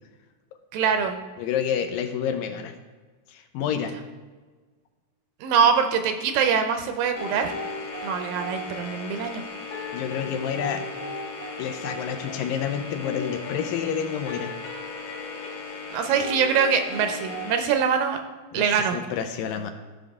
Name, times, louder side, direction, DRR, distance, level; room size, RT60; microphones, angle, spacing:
voice 1, 0.7-1.2 5.4-7.5 8.0-9.4 15.9-18.2 18.5-19.0, right 6 dB, 80° right, 6 dB, 2.2 m, -23 dB
voice 2, 1.4-2.7 3.3-3.9 9.9-10.8 11.6-14.5 18.5-19.7, left 8 dB, 80° left, 7 dB, 2.3 m, -29 dB
sound 1, 7.1-17.6, left 3 dB, 55° left, 3.1 m, -35 dB
14.5 x 5.5 x 3.5 m, 1.4 s
omnidirectional pair, 4.3 m